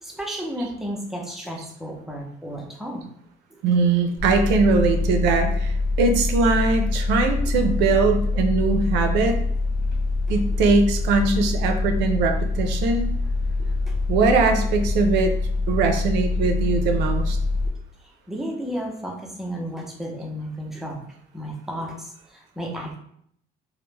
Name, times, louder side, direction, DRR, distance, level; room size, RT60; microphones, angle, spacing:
voice 1, 0.0-3.0 3.7-3.8 10.5-10.6 13.6-13.7 18.3-21.0 21.3-23.0, equal, ahead, -1 dB, 0.5 m, -33 dB
voice 2, 3.6-9.4 10.3-13.1 14.1-15.3 15.7-17.4, right 4 dB, 85° right, 5 dB, 0.4 m, -21 dB
sound 1, 4.2-17.7, left 3 dB, 65° left, 0.9 m, -24 dB
2.1 x 2.0 x 3.1 m, 0.68 s
cardioid pair, 110°, 17 cm